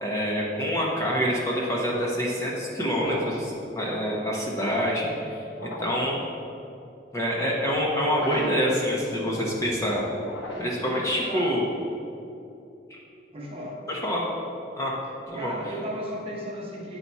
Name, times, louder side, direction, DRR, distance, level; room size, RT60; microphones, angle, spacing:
voice 1, 0.0-6.2 7.1-10.0 10.6-11.7 12.9-13.0 13.9-14.2 14.8-14.9 15.3-15.7, equal, 15° left, -4 dB, 0.9 m, -26 dB
sound 1, 3.0-3.5 5.5-6.2 8.1-8.7 10.2-10.9, left 1 dB, 80° left, 1.1 m, -35 dB
voice 2, 4.2-4.7 11.2-11.5 13.3-13.8 15.4-17.0, equal, 30° right, -3 dB, 1.0 m, -36 dB
8.8 x 4.1 x 4.6 m, 2.6 s
head